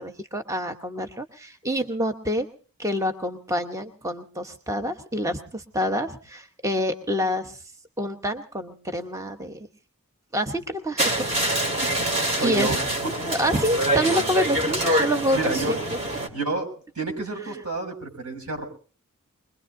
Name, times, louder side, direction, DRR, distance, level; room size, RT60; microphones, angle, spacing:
voice 1, 0.0-2.5 2.8-7.6 8.0-9.6 10.3-11.4 12.4-12.8 13.3-15.8, equal, 15° right, 7 dB, 1.0 m, -27 dB
sound 1, 11.0-16.3, right 1 dB, 30° right, 2.6 m, -25 dB
voice 2, 12.4-12.8 15.3-15.8 16.3-18.6, right 3 dB, 90° right, 3 dB, 6.2 m, -29 dB
24.0 x 22.0 x 2.6 m, 0.39 s
head